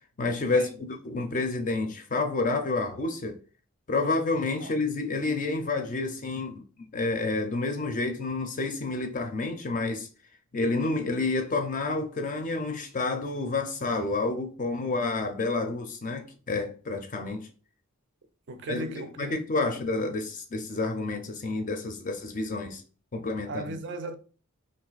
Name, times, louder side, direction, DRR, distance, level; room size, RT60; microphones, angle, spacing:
voice 1, 0.2-3.4 3.9-6.6 6.9-10.1 10.5-17.5 18.7-22.8 23.1-23.8, left 3 dB, 35° left, 0.5 m, -29 dB
voice 2, 18.5-19.6 23.5-24.1, right 2 dB, 50° right, 0.4 m, -37 dB
2.6 x 2.5 x 3.9 m
head